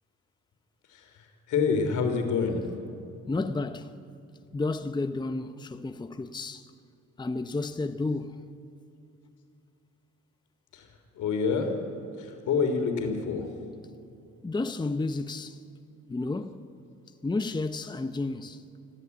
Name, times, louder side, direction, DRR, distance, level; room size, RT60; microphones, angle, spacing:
voice 1, 0.9-2.6 10.7-11.7 12.2-13.5, left 5 dB, 80° left, 3.2 m, -28 dB
voice 2, 3.3-4.0 4.5-6.7 7.2-8.6 14.4-15.6 16.1-16.6 17.2-18.6, left 3 dB, 15° left, 0.8 m, -31 dB
25.0 x 14.5 x 8.4 m
cardioid pair, 90°, 30 cm